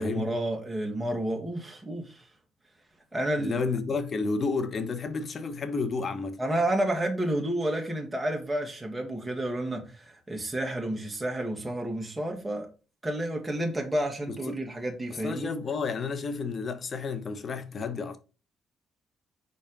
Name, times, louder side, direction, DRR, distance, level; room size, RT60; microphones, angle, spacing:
voice 1, 0.0-2.2 3.1-3.6 6.4-12.7 13.0-15.5, right 1 dB, 10° right, 1.7 m, -30 dB
voice 2, 3.4-6.4 14.3-14.6 15.1-18.2, left 4 dB, 45° left, 1.1 m, -31 dB
5.4 x 4.2 x 5.3 m
cardioid pair, 90°, 0 cm